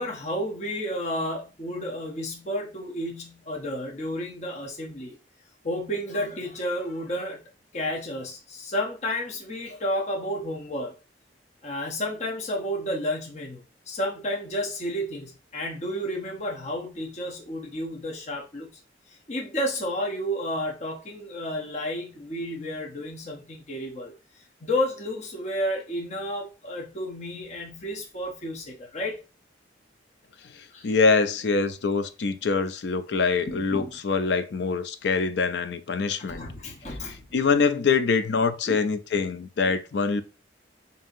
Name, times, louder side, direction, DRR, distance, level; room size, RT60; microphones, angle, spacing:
voice 1, 0.0-5.2 5.6-7.4 7.7-10.9 11.6-18.7 19.1-24.1 24.6-29.2 30.7-30.9 33.5-34.0 36.3-37.3 38.7-38.8, equal, 40° left, 0.8 m, -31 dB
voice 2, 30.8-36.4 37.3-40.2, left 4 dB, 65° left, 0.4 m, -24 dB
5.4 x 2.8 x 2.6 m
head